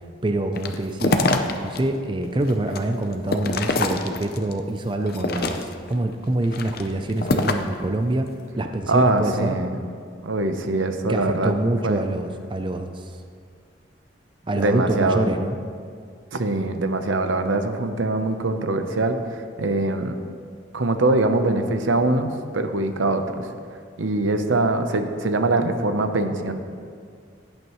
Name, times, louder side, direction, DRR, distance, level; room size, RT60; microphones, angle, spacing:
voice 1, 0.2-1.2 1.6-8.3 8.6-9.6 11.1-13.2 14.4-15.6, right 1 dB, 25° right, 6 dB, 0.4 m, -25 dB
sound 1, 0.6-1.8 2.2-4.5 5.0-5.9 6.4-7.8, left 2 dB, 50° left, 0.6 m, -25 dB
voice 2, 8.9-9.7 10.2-11.5 11.8-12.0 14.6-15.3 16.3-20.2 20.7-23.5 24.0-26.5, right 2 dB, 85° right, 7 dB, 0.8 m, -23 dB
16.5 x 8.9 x 3.1 m, 2.2 s
head